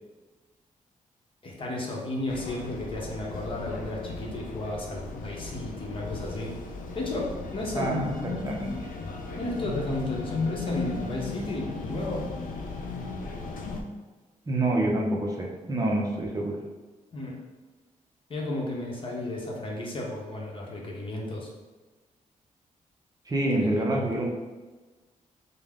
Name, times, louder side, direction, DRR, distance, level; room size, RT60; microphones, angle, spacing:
voice 1, 1.4-6.6 6.9-8.1 9.4-12.2 17.1-17.4 18.3-21.5 23.6-24.2, left 1 dB, 40° left, -2 dB, 0.8 m, -33 dB
sound 1, 2.3-13.8, left 3 dB, 85° left, 0.5 m, -36 dB
voice 2, 7.7-8.7 14.5-16.6 23.2-24.2, right 1 dB, 25° right, -2 dB, 0.6 m, -27 dB
5.4 x 2.1 x 3.5 m, 1.3 s
wide cardioid pair, 145°, 14 cm